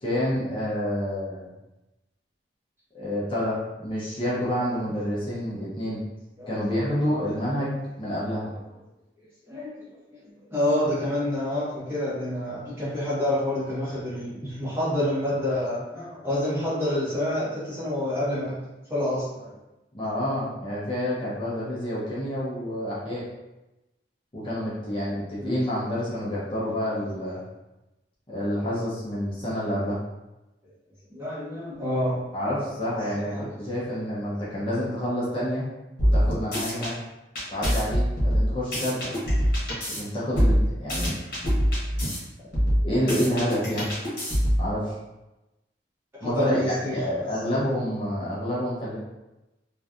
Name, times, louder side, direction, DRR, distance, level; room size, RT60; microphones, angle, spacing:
voice 1, 0.0-1.5 2.9-3.6 3.8-6.0 6.5-8.5 19.9-23.2 24.3-27.4 28.3-30.0 32.3-35.6 36.0-36.9 37.5-39.1 39.9-41.1 42.8-43.9 44.6-44.9 46.2-49.0, equal, 30° left, -8 dB, 0.7 m, -28 dB
voice 2, 9.5-9.9 10.5-18.6 18.9-19.5 25.4-25.6 27.1-27.2 31.1-32.2 33.3-33.5 46.2-46.9, left 1 dB, 15° right, -10 dB, 1.2 m, -28 dB
sound 1, 36.0-36.9 37.3-40.0 40.3-42.2 42.5-44.7, equal, 55° left, 1.2 m, -24 dB
3.0 x 2.5 x 2.4 m, 1.0 s
head